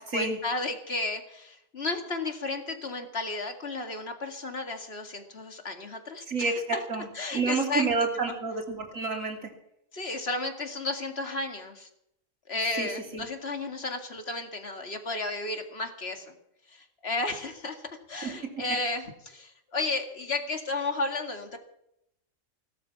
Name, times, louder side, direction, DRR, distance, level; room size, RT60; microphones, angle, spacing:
voice 1, 0.0-6.8 7.1-8.4 9.9-11.9 12.5-16.4 16.7-21.6, left 3 dB, 50° left, 5 dB, 2.3 m, -33 dB
voice 2, 6.3-7.1 7.3-9.5 12.8-13.3 18.2-18.3, right 4 dB, 80° right, 2 dB, 3.4 m, -29 dB
18.0 x 12.5 x 6.0 m, 0.78 s
omnidirectional pair, 1.4 m